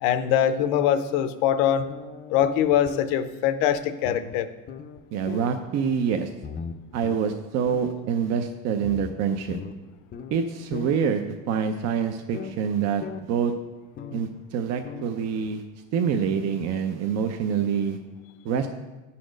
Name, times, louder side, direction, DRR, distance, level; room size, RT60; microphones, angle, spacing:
voice 1, 0.0-1.8 2.3-4.5, left 10 dB, 85° left, 12 dB, 0.6 m, -23 dB
sound 1, 1.8-3.1 3.7-3.8 4.0-4.4 4.7-5.6 6.4-7.4 7.7-7.9 8.8-10.4 10.7-11.0 12.3-12.6 13.0-13.2 14.0-14.3 14.8-15.1 15.4-15.5 16.7-16.8, left 6 dB, 30° left, 0.4 m, -38 dB
voice 2, 5.1-6.3 6.9-9.6 10.3-11.2 11.5-13.5 14.1-15.6 15.9-18.0 18.4-18.7, right 7 dB, 55° right, 6 dB, 0.6 m, -26 dB
9.3 x 4.3 x 5.0 m, 1.1 s
cardioid pair, 125°, 31 cm